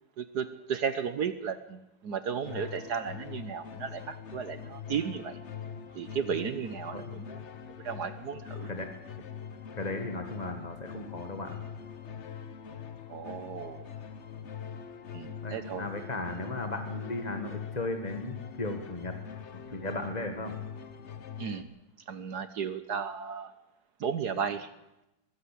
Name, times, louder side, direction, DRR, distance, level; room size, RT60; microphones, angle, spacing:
voice 1, 0.2-5.4 5.9-7.4 7.8-8.7 13.1-13.9 15.1-15.9 21.4-21.7 22.1-23.5 24.0-24.7, right 7 dB, 55° right, 12 dB, 1.3 m, -34 dB
sound 1, 2.4-21.6, left 7 dB, 45° left, 1.1 m, -43 dB
voice 2, 9.8-11.6 15.4-19.2 19.7-20.5, left 2 dB, 20° left, 5 dB, 1.6 m, -36 dB
22.5 x 15.0 x 8.4 m, 0.92 s
omnidirectional pair, 2.3 m